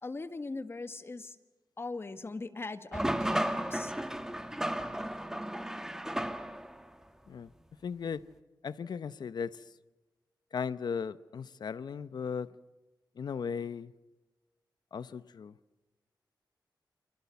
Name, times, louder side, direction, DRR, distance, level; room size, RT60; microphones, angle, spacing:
voice 1, 0.0-1.3 1.8-3.9, left 3 dB, 35° left, 1.6 m, -40 dB
sound 1, 2.9-6.8, right 1 dB, 5° right, 1.6 m, -34 dB
voice 2, 7.8-8.2 8.6-9.6 10.5-12.5 13.2-13.9 14.9-15.5, left 6 dB, 70° left, 0.9 m, -37 dB
29.5 x 25.5 x 7.1 m
wide cardioid pair, 130°, 7 cm